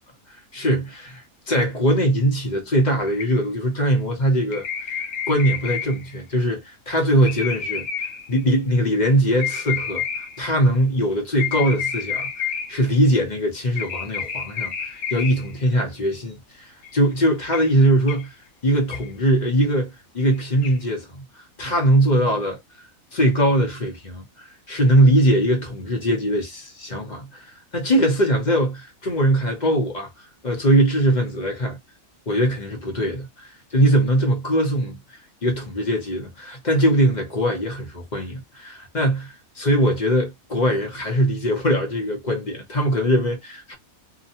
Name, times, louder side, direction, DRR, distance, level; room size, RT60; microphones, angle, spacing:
voice 1, 0.5-7.9 8.3-18.3 18.6-22.9 23.1-31.8 32.3-35.0 35.4-43.7, right 1 dB, 40° left, 0.8 m, -21 dB
sound 1, 3.0-3.6 4.5-6.1 7.3-8.4 9.4-10.5 11.4-13.0 13.8-15.5 16.8-16.9 17.5-17.7 18.1-18.3 18.9-19.1 20.3-20.4 20.6-20.8, left 7 dB, 65° left, 1.1 m, -30 dB
2.9 x 2.2 x 2.7 m
omnidirectional pair, 1.5 m